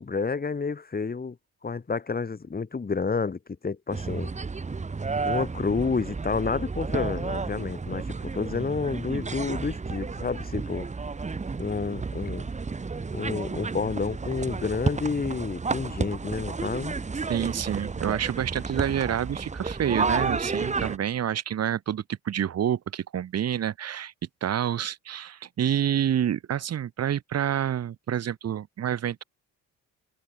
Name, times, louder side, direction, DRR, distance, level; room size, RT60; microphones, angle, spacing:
voice 1, 0.0-1.4 1.6-4.3 5.2-10.9 11.6-12.4 13.1-17.0, left 4 dB, 30° left, 4.0 m, -30 dB
sound 1, 3.9-21.0, right 4 dB, 25° right, 1.5 m, -31 dB
voice 2, 17.3-24.1 24.4-29.2, right 10 dB, 55° right, 1.6 m, -28 dB
cardioid pair, 90°, 30 cm